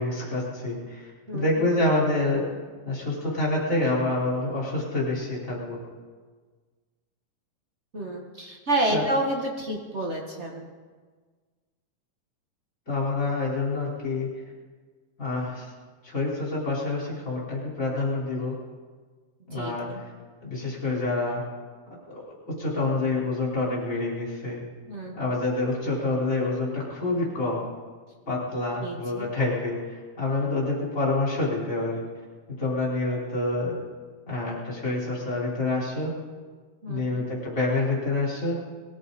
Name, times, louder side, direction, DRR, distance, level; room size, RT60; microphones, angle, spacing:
voice 1, 0.0-2.5 2.8-5.8 8.9-9.0 12.9-14.3 15.2-15.7 16.0-18.6 19.5-20.0 20.4-21.4 22.1-24.6 25.1-27.6 28.3-32.0 32.6-33.8 34.3-36.2 36.9-38.6, left 2 dB, 20° left, -6 dB, 4.8 m, -27 dB
voice 2, 1.3-1.7 7.9-10.7 19.5-20.0 24.9-25.2 28.8-29.3 36.8-37.3, right 1 dB, 50° right, 0 dB, 0.8 m, -29 dB
22.0 x 14.0 x 4.2 m, 1.5 s
omnidirectional pair, 3.9 m